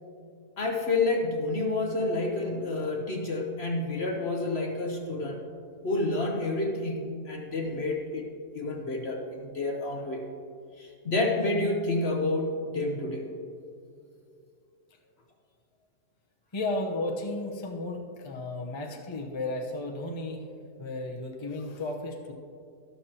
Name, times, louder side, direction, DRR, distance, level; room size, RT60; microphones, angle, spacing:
voice 1, 0.6-5.4 5.8-8.3 8.5-10.2 10.8-13.3, left 2 dB, 50° left, 2 dB, 0.9 m, -29 dB
voice 2, 16.5-20.4 20.8-22.3, left 2 dB, 25° left, 1 dB, 0.7 m, -34 dB
12.5 x 12.5 x 2.9 m, 2.4 s
omnidirectional pair, 1.7 m